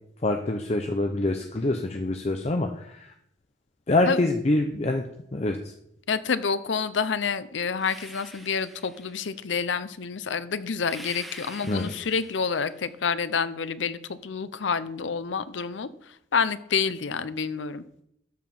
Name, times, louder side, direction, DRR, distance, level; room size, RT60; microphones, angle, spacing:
voice 1, 0.2-3.1 3.9-5.0 5.3-5.7 11.6-11.9, left 2 dB, 35° left, 5 dB, 0.6 m, -25 dB
voice 2, 6.1-17.8, left 5 dB, 75° left, 14 dB, 0.6 m, -28 dB
sound 1, 7.8-9.4 10.8-12.9, equal, ahead, 1.2 m, -45 dB
13.0 x 4.9 x 5.4 m, 0.75 s
head